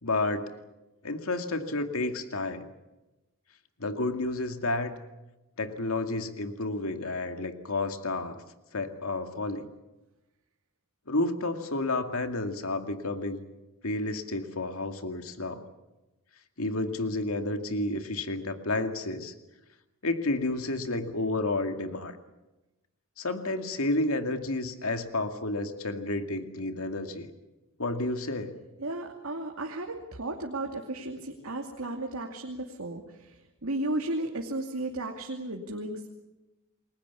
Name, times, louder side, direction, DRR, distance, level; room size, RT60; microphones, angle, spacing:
voice 1, 0.0-0.5 1.0-2.7 3.8-5.0 5.6-8.4 8.7-9.6 11.1-13.4 13.8-15.6 16.6-19.3 20.0-22.2 23.2-27.3 27.8-28.6, left 2 dB, 85° left, 6 dB, 2.3 m, -31 dB
voice 2, 28.8-36.1, right 2 dB, 85° right, 2 dB, 2.5 m, -34 dB
29.5 x 21.0 x 7.0 m, 1.0 s
head